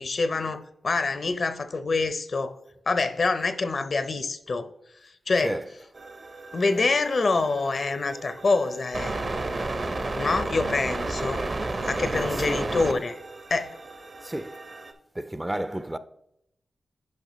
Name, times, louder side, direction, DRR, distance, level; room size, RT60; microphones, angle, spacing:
voice 1, 0.0-2.6 2.9-4.7 5.3-5.6 6.5-9.2 10.1-11.4 11.9-13.2 13.5-13.7, left 3 dB, 60° left, 0.6 m, -26 dB
sound 1, 5.9-14.9, right 2 dB, 55° right, 0.9 m, -33 dB
voice 2, 12.1-12.7 14.2-14.6 15.1-16.0, right 1 dB, 15° right, 0.4 m, -32 dB
9.2 x 5.2 x 3.0 m
cardioid pair, 55°, 0 cm